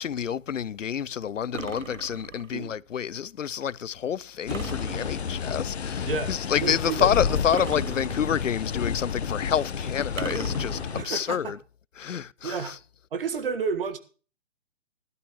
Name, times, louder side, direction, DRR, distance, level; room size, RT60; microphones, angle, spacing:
voice 1, 0.0-11.6 12.0-12.8, left 8 dB, 80° left, 0.5 m, -28 dB
sound 1, 1.5-2.6 4.5-5.6 7.5-8.6 10.2-11.2, right 6 dB, 85° right, 0.7 m, -38 dB
sound 2, 4.5-11.0, left 7 dB, 55° left, 1.0 m, -30 dB
voice 2, 6.6-7.4 10.9-11.5 12.4-12.7 13.1-14.0, right 5 dB, 45° right, 1.6 m, -31 dB
16.5 x 12.0 x 3.0 m
figure-of-eight pair, 140°, 38 cm